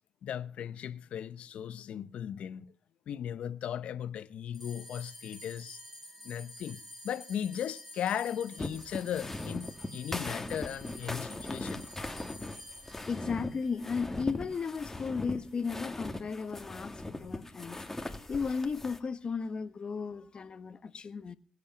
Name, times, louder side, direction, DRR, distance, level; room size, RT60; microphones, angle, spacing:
voice 1, 0.2-2.7 3.1-5.8 6.2-11.8, left 9 dB, 70° left, 0.8 m, -37 dB
sound 1, 4.5-15.2, left 1 dB, 5° right, 5.1 m, -50 dB
sound 2, 8.6-19.0, left 2 dB, 15° left, 2.3 m, -39 dB
voice 2, 13.1-21.4, left 5 dB, 45° left, 1.2 m, -35 dB
22.5 x 8.5 x 5.8 m
supercardioid pair, 65°, 2 cm